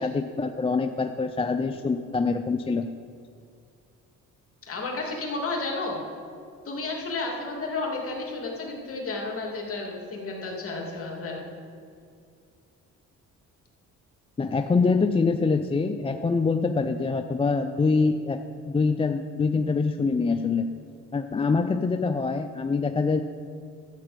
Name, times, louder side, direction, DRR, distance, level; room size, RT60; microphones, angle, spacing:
voice 1, 0.0-2.9 14.4-20.7 21.1-23.2, left 4 dB, 20° left, 7 dB, 0.4 m, -25 dB
voice 2, 4.7-6.0 6.6-11.4, left 3 dB, 50° left, -1 dB, 2.6 m, -32 dB
12.5 x 8.1 x 5.1 m, 2.4 s
cardioid pair, 90°, 30 cm